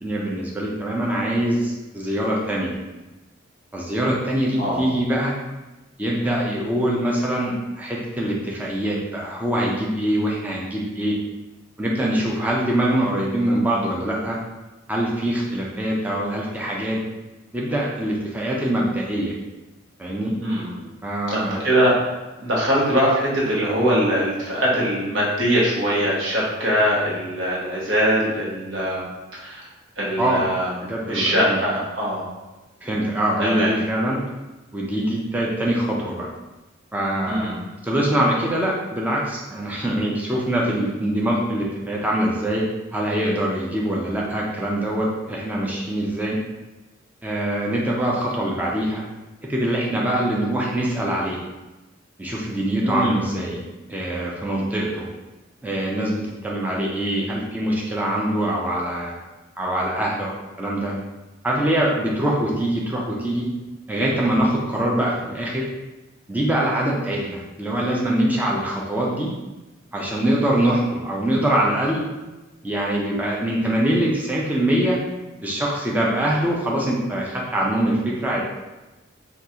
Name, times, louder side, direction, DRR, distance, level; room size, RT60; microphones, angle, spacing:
voice 1, 0.0-2.7 3.7-5.3 6.0-11.1 11.8-14.4 14.9-17.0 17.5-19.3 20.0-20.3 21.0-21.6 30.2-30.4 30.9-31.6 32.8-34.2 34.7-36.3 36.9-37.6 37.8-42.6 42.9-46.4 47.2-49.0 49.5-51.4 52.2-53.6 53.9-55.1 55.6-59.1 59.6-60.3 60.6-60.9 61.4-63.5 63.9-65.6 66.3-69.3 69.9-72.0 72.6-75.0 75.4-78.4, right 1 dB, 10° right, -4 dB, 0.4 m, -23 dB
voice 2, 20.4-20.9 21.3-22.0 22.4-29.1 29.3-29.6 30.0-30.7 31.1-32.3 33.4-33.7 37.3-37.6 52.8-53.2, equal, 65° right, -5 dB, 1.0 m, -22 dB
3.6 x 2.3 x 2.8 m, 1.1 s
head